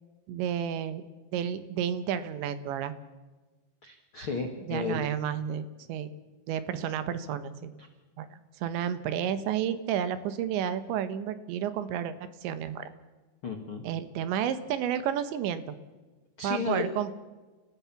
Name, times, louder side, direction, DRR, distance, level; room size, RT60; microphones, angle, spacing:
voice 1, 0.3-1.0 1.3-2.9 4.7-6.1 6.5-7.8 8.2-12.9 13.8-15.8 16.4-17.1, right 9 dB, 75° right, 12 dB, 3.3 m, -31 dB
voice 2, 3.8-5.0 7.8-7.9 13.4-13.8 16.4-16.8, left 4 dB, 70° left, 4 dB, 1.2 m, -33 dB
29.0 x 15.5 x 7.1 m, 1.3 s
omnidirectional pair, 5.5 m